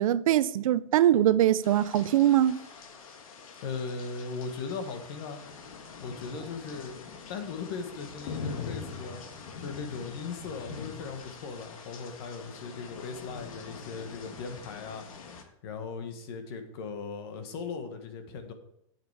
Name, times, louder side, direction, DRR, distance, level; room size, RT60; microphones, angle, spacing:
voice 1, 0.0-2.6, right 12 dB, 80° right, 0.5 m, -22 dB
sound 1, 1.6-15.4, left 5 dB, 80° left, 1.6 m, -43 dB
voice 2, 3.6-5.4 6.0-7.0 7.3-9.2 9.6-15.1 15.4-18.5, left 5 dB, 45° left, 1.3 m, -38 dB
8.1 x 7.7 x 4.9 m
supercardioid pair, 170°, 17 cm